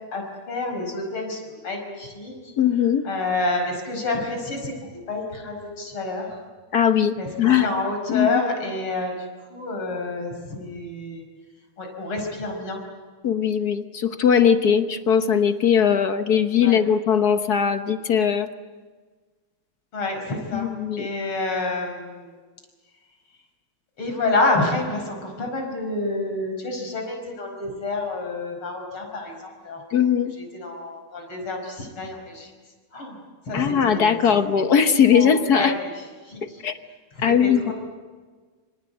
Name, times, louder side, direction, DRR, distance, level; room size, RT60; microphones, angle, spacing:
voice 1, 0.1-2.3 3.1-6.4 7.2-9.1 9.5-11.2 11.8-12.8 16.6-16.8 19.9-20.7 21.0-22.3 24.0-29.4 29.6-29.8 30.5-32.5 32.9-33.2 33.5-34.4 35.1-35.9 36.3-36.4 37.2-37.7, left 2 dB, 90° left, 3 dB, 6.0 m, -28 dB
voice 2, 2.6-3.0 6.7-7.7 8.1-8.4 13.2-18.5 20.5-21.1 29.9-30.3 33.5-35.7 36.4-36.7 37.2-37.7, left 7 dB, 55° left, 9 dB, 1.4 m, -20 dB
27.0 x 27.0 x 8.0 m, 1.4 s
omnidirectional pair, 2.3 m